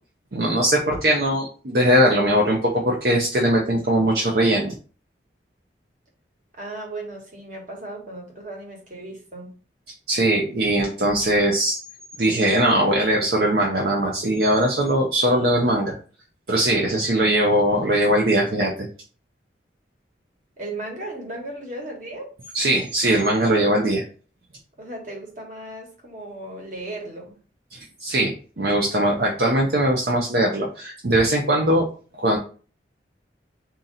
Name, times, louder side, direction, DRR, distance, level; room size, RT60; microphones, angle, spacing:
voice 1, 0.3-4.7 10.1-11.8 12.2-16.0 16.5-18.9 22.5-24.0 27.7-31.9 32.2-32.4, right 1 dB, 60° right, -1 dB, 0.7 m, -20 dB
voice 2, 6.5-9.5 20.6-22.3 24.8-27.4, right 2 dB, 45° right, 0 dB, 1.4 m, -36 dB
3.8 x 2.8 x 4.0 m, 0.39 s
head